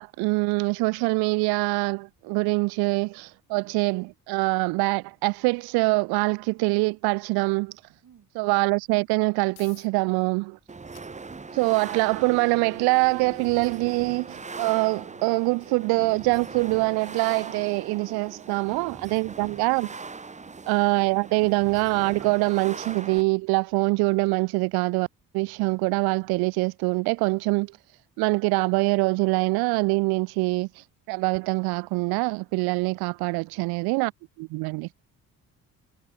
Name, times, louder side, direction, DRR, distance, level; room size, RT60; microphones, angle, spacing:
voice 1, 0.0-7.7 8.4-10.6 11.5-19.9 20.7-25.1 25.3-27.7 28.2-30.7 31.1-34.1 34.4-34.9, right 27 dB, 90° right, 0.5 m, -24 dB
voice 2, 8.0-8.3 18.7-19.0 20.4-20.7 33.5-33.9, right 8 dB, 55° right, 6.9 m, -58 dB
sound 1, 9.5-23.9, left 21 dB, 90° left, 7.9 m, -63 dB
sound 2, 10.7-23.2, right 4 dB, 20° right, 1.1 m, -41 dB
supercardioid pair, 75°, 37 cm